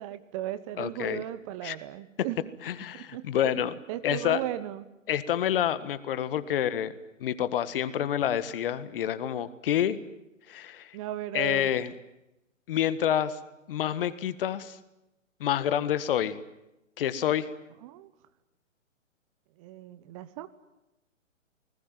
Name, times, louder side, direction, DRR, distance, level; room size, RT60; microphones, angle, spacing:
voice 1, 0.0-2.4 2.9-4.9 10.9-11.7 17.8-18.1 19.6-20.5, right 13 dB, 25° right, 13 dB, 1.1 m, -36 dB
voice 2, 0.8-1.2 1.6-1.8 2.6-3.7 4.0-4.4 5.1-6.9 7.2-10.0 10.5-10.9 11.3-11.9 12.7-13.4 13.7-14.8 15.4-16.4 17.0-17.5, left 10 dB, 45° left, 14 dB, 1.7 m, -28 dB
29.5 x 20.0 x 9.3 m, 0.93 s
figure-of-eight pair, 130°, 39 cm